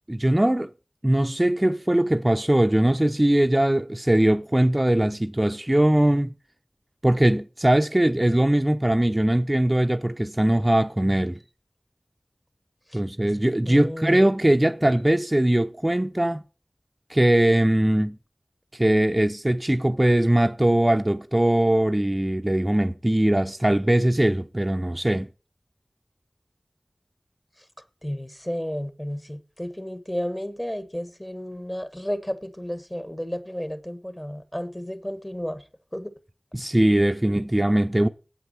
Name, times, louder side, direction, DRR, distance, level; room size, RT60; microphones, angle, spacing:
voice 1, 0.1-0.7 1.0-6.3 7.0-11.4 12.9-16.4 17.1-18.2 18.7-25.3 36.5-38.1, right 1 dB, 25° right, 0.6 m, -21 dB
voice 2, 13.7-14.2 28.0-35.6 35.9-36.1, equal, 20° left, 1.4 m, -32 dB
8.3 x 8.0 x 7.5 m
wide cardioid pair, 45°, 0 cm